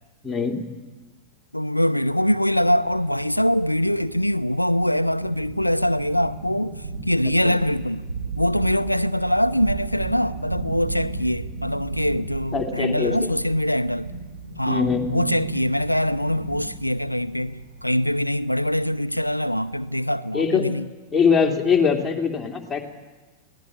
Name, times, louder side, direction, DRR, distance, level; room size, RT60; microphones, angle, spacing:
voice 1, 0.2-0.6 7.5-7.6 12.5-13.1 14.7-15.1 20.3-20.7 21.1-22.8, left 6 dB, 15° left, 2.9 m, -22 dB
voice 2, 1.5-8.0 8.4-14.1 14.6-20.9, equal, 90° left, 0.7 m, -23 dB
sound 1, 2.0-19.9, right 3 dB, 75° right, 4.0 m, -36 dB
22.0 x 17.0 x 8.8 m
figure-of-eight pair, 90°, 0 cm